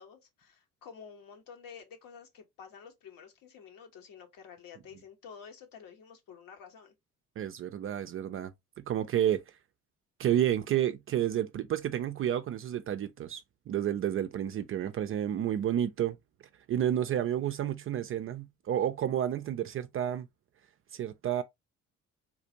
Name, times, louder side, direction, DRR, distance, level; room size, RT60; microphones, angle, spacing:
voice 1, 0.0-6.9, left 6 dB, 55° left, 1.1 m, -50 dB
voice 2, 7.4-8.5 8.8-9.4 10.2-16.2 16.7-20.3 20.9-21.4, right 10 dB, 35° right, 0.4 m, -30 dB
3.8 x 2.4 x 2.7 m
figure-of-eight pair, 50°, 40 cm